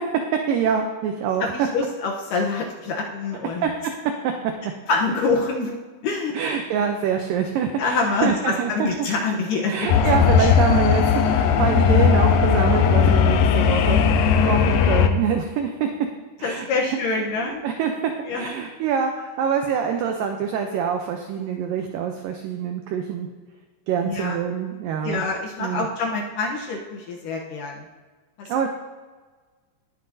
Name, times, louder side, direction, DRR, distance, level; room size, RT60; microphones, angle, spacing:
voice 1, 0.5-1.7 3.6-3.7 4.2-4.3 6.3-8.9 9.7-14.0 14.4-15.9 16.4-17.0 17.4-23.3 23.9-25.3 25.6-25.9 28.5-28.7, right 7 dB, 80° right, 4 dB, 2.0 m, -25 dB
voice 2, 1.4-3.7 4.9-5.8 6.0-6.3 7.8-9.9 10.4-10.5 16.4-17.6 18.3-18.5 19.9-20.1 24.0-24.4 25.0-27.9 28.4-28.5, left 3 dB, 75° left, 0 dB, 2.1 m, -26 dB
sound 1, 9.9-15.1, left 7 dB, 90° left, 2.7 m, -17 dB
19.5 x 6.7 x 2.7 m, 1.4 s
omnidirectional pair, 4.7 m